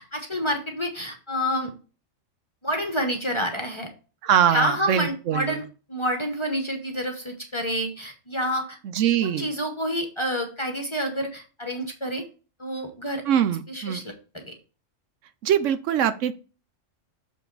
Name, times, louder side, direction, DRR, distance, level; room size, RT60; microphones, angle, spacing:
voice 1, 0.0-1.7 2.6-3.9 4.5-5.6 5.9-8.8 9.2-12.2 12.6-13.2 13.7-14.5, equal, 25° left, 4 dB, 0.9 m, -28 dB
voice 2, 4.2-5.6 8.8-9.5 13.3-14.0 15.4-16.3, right 9 dB, 75° right, 12 dB, 0.9 m, -23 dB
6.5 x 5.1 x 3.9 m, 0.35 s
omnidirectional pair, 1.3 m